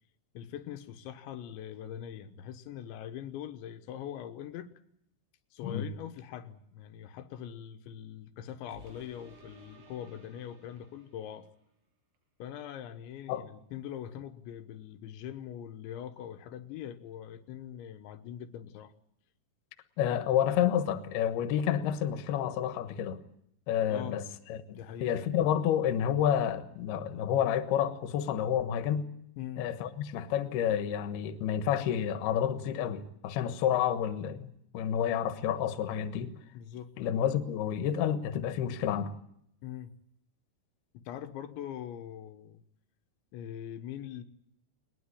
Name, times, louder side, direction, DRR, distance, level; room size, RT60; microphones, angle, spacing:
voice 1, 0.4-4.7 5.5-11.5 12.4-18.9 23.9-24.2 24.7-25.1 29.4-29.7 36.6-36.9 39.6-40.0 41.0-42.6 43.3-44.2, left 10 dB, 90° left, 3.6 m, -42 dB
sound 1, 8.7-11.6 12.2-12.3, right 3 dB, 65° right, 8.3 m, -56 dB
voice 2, 20.0-23.2 23.7-24.2 24.5-29.1 29.6-36.3 37.0-39.1, left 9 dB, 70° left, 3.2 m, -29 dB
21.0 x 20.0 x 10.0 m
omnidirectional pair, 5.1 m